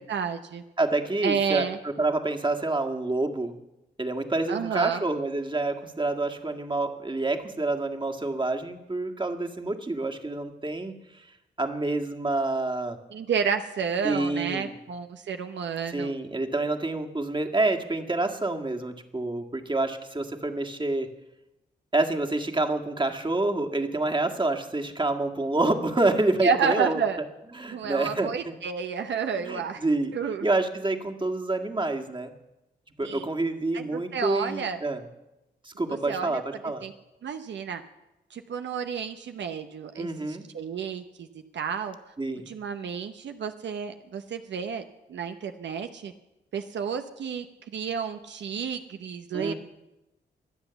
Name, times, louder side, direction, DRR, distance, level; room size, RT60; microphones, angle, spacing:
voice 1, 0.0-0.6 1.2-1.8 4.5-5.0 13.1-16.1 26.4-27.2 27.7-29.8 30.1-30.4 33.0-33.2 33.7-34.8 35.9-36.9 37.2-37.8 38.3-41.3 41.5-42.0 42.5-46.1 46.5-47.5 47.7-49.5, right 6 dB, 75° right, 7 dB, 0.8 m, -30 dB
voice 2, 0.8-3.5 4.0-11.3 11.6-13.0 14.0-14.7 15.9-21.1 21.9-27.0 27.6-28.5 29.4-30.1 30.4-32.3 33.0-35.0 35.6-36.8 40.0-40.4 42.2-42.5 49.3-49.5, right 2 dB, 25° right, 3 dB, 1.9 m, -28 dB
23.5 x 8.0 x 7.0 m, 0.96 s
cardioid pair, 55°, 19 cm